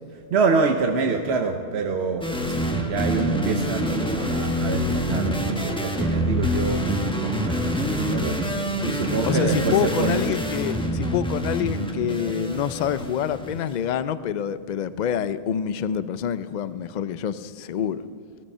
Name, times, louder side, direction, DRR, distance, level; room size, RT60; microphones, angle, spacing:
voice 1, 0.3-2.6 2.8-10.2, right 4 dB, 80° right, 4 dB, 1.1 m, -26 dB
sound 1, 2.2-13.7, equal, 5° left, 1.1 m, -26 dB
voice 2, 9.2-18.0, left 9 dB, 55° left, 14 dB, 0.6 m, -27 dB
17.5 x 14.0 x 5.5 m, 2.2 s
omnidirectional pair, 1.1 m